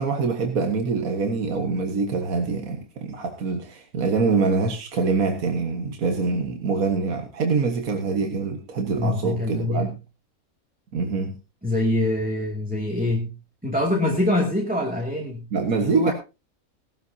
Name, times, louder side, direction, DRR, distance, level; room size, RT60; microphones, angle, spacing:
voice 1, 0.0-9.9 10.9-11.4 15.5-16.1, right 4 dB, 75° right, 4 dB, 1.8 m, -24 dB
voice 2, 9.0-9.9 11.6-13.3 13.6-15.4 15.9-16.1, left 1 dB, 5° right, -1 dB, 2.4 m, -24 dB
19.0 x 12.5 x 2.7 m, 0.29 s
omnidirectional pair, 1.5 m